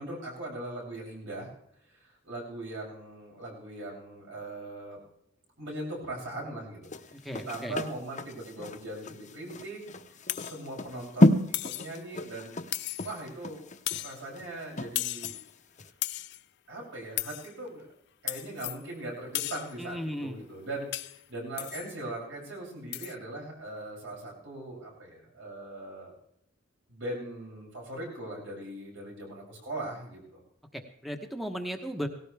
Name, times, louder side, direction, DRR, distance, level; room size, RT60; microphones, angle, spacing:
voice 1, 0.0-1.5 1.9-5.0 5.6-6.9 7.3-9.8 10.4-12.7 13.0-13.6 14.0-15.4 16.7-17.9 18.2-26.2 26.9-30.4, right 1 dB, 75° right, -3 dB, 7.5 m, -40 dB
sound 1, 6.8-15.4 15.8-15.9, left 1 dB, 40° left, 0.9 m, -30 dB
voice 2, 7.1-7.7 19.8-20.4 30.7-32.1, equal, ahead, 5 dB, 1.1 m, -36 dB
sound 2, 10.3-10.6 11.5-11.9 12.7-13.2 13.9-14.2 14.9-15.5 16.0-16.4 17.2-17.5 18.3-18.8 19.3-19.7 20.9-21.2 21.6-21.9 22.9-23.1, left 16 dB, 60° left, 0.6 m, -35 dB
18.5 x 16.5 x 3.5 m, 0.75 s
head